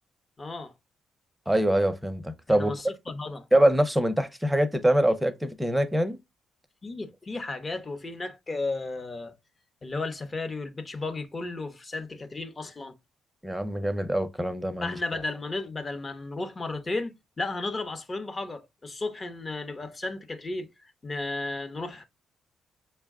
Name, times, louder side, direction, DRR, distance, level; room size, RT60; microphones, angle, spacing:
voice 1, 0.4-0.7 2.5-3.5 6.8-9.4 9.8-13.0 14.8-22.0, left 2 dB, 30° left, 0.8 m, -34 dB
voice 2, 1.5-2.7 3.5-6.2 13.4-15.0, right 1 dB, 5° right, 0.6 m, -24 dB
6.2 x 2.2 x 3.5 m
cardioid pair, 90°, 0 cm